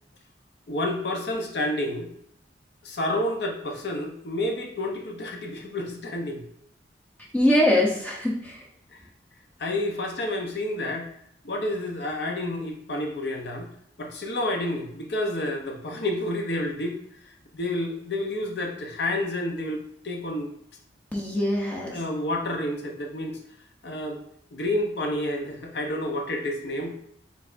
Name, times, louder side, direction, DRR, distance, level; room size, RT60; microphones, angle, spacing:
voice 1, 0.7-2.1 2.8-6.4 9.6-11.1 11.4-13.7 14.0-20.5 21.9-23.4 23.8-24.2 24.5-26.9, left 1 dB, 65° left, 2 dB, 0.8 m, -29 dB
voice 2, 7.3-8.6 21.1-22.0, left 1 dB, 10° left, -3 dB, 0.6 m, -23 dB
5.0 x 3.4 x 2.6 m, 0.69 s
head